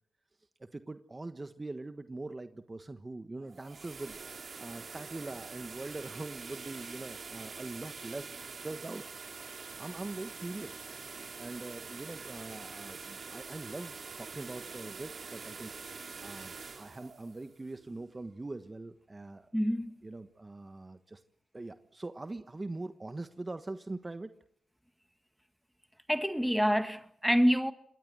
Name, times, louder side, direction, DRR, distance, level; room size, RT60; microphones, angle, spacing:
voice 1, 0.6-4.2 4.6-9.0 9.8-10.8 11.4-15.7 16.2-19.5 20.0-21.2 21.5-24.3, right 2 dB, 25° right, 1.3 m, -42 dB
sound 1, 3.4-18.3, right 5 dB, 55° right, 2.8 m, -45 dB
voice 2, 19.5-19.9 26.1-27.7, equal, ahead, 1.9 m, -27 dB
27.0 x 22.0 x 7.7 m
cardioid pair, 60°, 0 cm